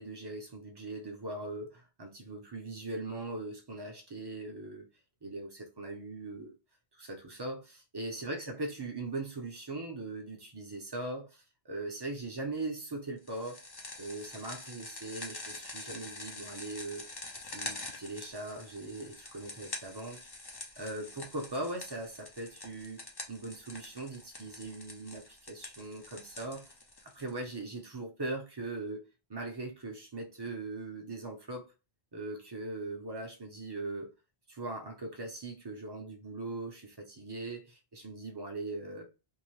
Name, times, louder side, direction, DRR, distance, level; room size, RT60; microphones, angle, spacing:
voice 1, 0.0-4.9 5.2-6.5 7.0-13.7 14.0-17.0 17.4-20.2 20.8-26.7 27.0-31.7 32.1-34.1 34.5-39.0, right 2 dB, 30° right, 0.5 m, -40 dB
sound 1, 13.3-27.6, left 2 dB, 35° left, 0.4 m, -46 dB
2.7 x 2.0 x 3.0 m
omnidirectional pair, 1.1 m